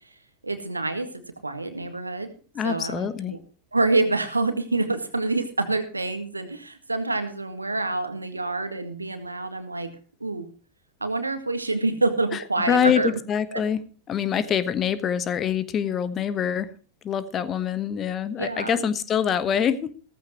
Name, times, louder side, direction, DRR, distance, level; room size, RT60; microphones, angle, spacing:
voice 1, 0.4-1.1 1.4-2.3 2.6-3.4 3.7-9.9 10.2-10.5 11.0-13.2 13.5-13.6 18.4-18.8, right 2 dB, 80° right, 9 dB, 1.8 m, -27 dB
voice 2, 2.5-3.4 12.3-12.4 12.7-13.8 14.1-16.7 17.0-19.9, left 8 dB, 25° left, 14 dB, 1.2 m, -25 dB
16.0 x 14.0 x 3.0 m, 0.38 s
figure-of-eight pair, 90°, 0 cm